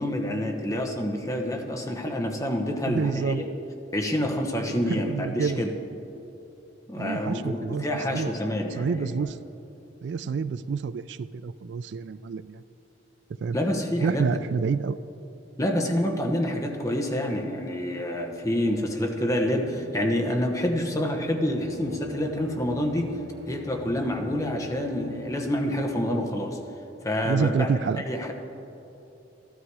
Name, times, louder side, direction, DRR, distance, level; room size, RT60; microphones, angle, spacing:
voice 1, 0.0-3.5 3.9-5.7 6.9-9.2 10.2-10.3 13.5-14.3 15.6-23.1 23.5-26.6 27.0-27.7 28.0-28.3, left 1 dB, 15° left, 3 dB, 1.0 m, -27 dB
voice 2, 2.9-3.4 4.9-5.6 7.0-7.9 8.1-8.3 8.8-9.4 10.0-12.6 13.4-13.6 14.0-15.0 27.2-28.0, right 5 dB, 65° right, 15 dB, 0.3 m, -28 dB
Bowed string instrument, 17.9-26.4, left 2 dB, 80° right, 2.2 m, -44 dB
13.0 x 13.0 x 4.8 m, 2.9 s
head